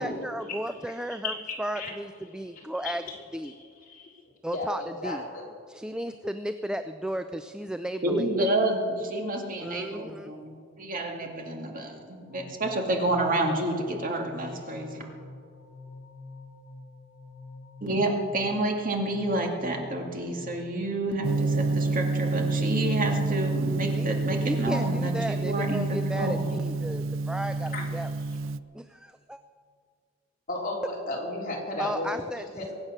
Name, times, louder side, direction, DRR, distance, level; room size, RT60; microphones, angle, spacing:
voice 1, 0.0-3.0 3.3-3.5 4.4-5.2 5.7-8.5 9.6-10.3 23.9-24.1 24.4-28.1 28.7-29.4 31.8-32.7, right 1 dB, 5° right, 9 dB, 0.4 m, -34 dB
voice 2, 1.2-1.9 2.8-2.9 3.9-4.2 4.5-4.7 5.0-5.5 27.7-27.8 30.5-32.2 32.5-32.7, left 2 dB, 45° left, -3 dB, 3.8 m, -33 dB
voice 3, 8.0-15.1 17.8-26.5, right 1 dB, 45° right, 2 dB, 2.2 m, -29 dB
sound 1, 12.3-21.5, left 3 dB, 70° left, 2.8 m, -47 dB
Gong, 21.2-28.6, right 3 dB, 70° right, 0.5 m, -28 dB
23.0 x 8.8 x 6.6 m, 2.1 s
head